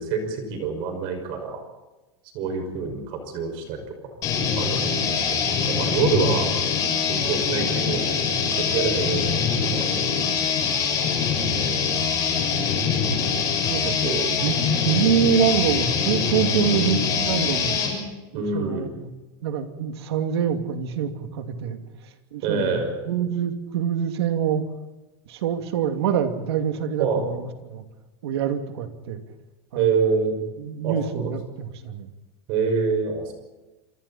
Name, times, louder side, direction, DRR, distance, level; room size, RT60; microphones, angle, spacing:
voice 1, 0.0-1.6 2.3-3.8 4.6-6.5 7.1-8.0 8.6-10.7 11.4-12.0 14.0-14.4 16.5-16.8 18.3-18.9 22.4-22.9 27.0-27.2 29.7-30.4 30.8-31.3 32.5-33.3, right 5 dB, 40° right, 5 dB, 5.9 m, -27 dB
sound 1, 4.2-17.9, left 6 dB, 25° left, 6.2 m, -24 dB
voice 2, 13.7-17.8 18.3-19.1 19.4-21.8 22.3-24.6 25.3-27.8 28.2-29.2 29.7-29.9 30.6-32.1, right 8 dB, 80° right, 6 dB, 2.6 m, -25 dB
27.5 x 25.5 x 4.3 m, 1.1 s
supercardioid pair, 170°, 13 cm